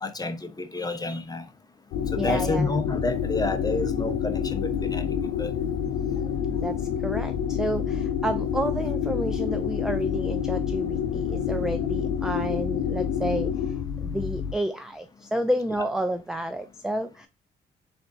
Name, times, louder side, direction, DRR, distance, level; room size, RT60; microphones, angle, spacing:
voice 1, 0.0-1.5 2.1-5.5, left 2 dB, 20° left, 0.8 m, -30 dB
sound 1, 1.9-14.5, left 8 dB, 70° left, 0.5 m, -28 dB
voice 2, 2.1-2.7 6.6-13.7 14.0-17.3, right 1 dB, 5° right, 0.4 m, -30 dB
3.7 x 3.5 x 2.5 m
supercardioid pair, 55°, 20 cm